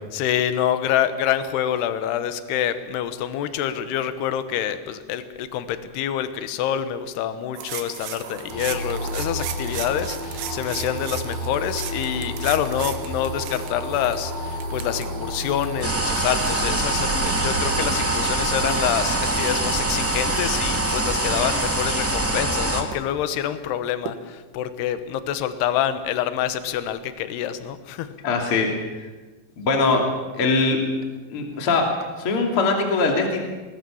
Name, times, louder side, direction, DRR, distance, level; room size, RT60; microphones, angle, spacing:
voice 1, 0.1-28.1, left 10 dB, 75° left, 11 dB, 3.1 m, -26 dB
sound 1, 7.5-23.0 24.1-24.2, right 9 dB, 70° right, 3.3 m, -38 dB
sound 2, 8.5-22.6, equal, 55° right, 4.9 m, -33 dB
sound 3, 15.8-22.8, right 2 dB, 20° right, 0.3 m, -24 dB
voice 2, 28.2-28.7 29.0-29.1 29.6-30.0 30.3-30.8 31.3-33.4, left 3 dB, 35° left, 2 dB, 3.1 m, -21 dB
21.0 x 20.5 x 7.1 m, 1.2 s
omnidirectional pair, 5.0 m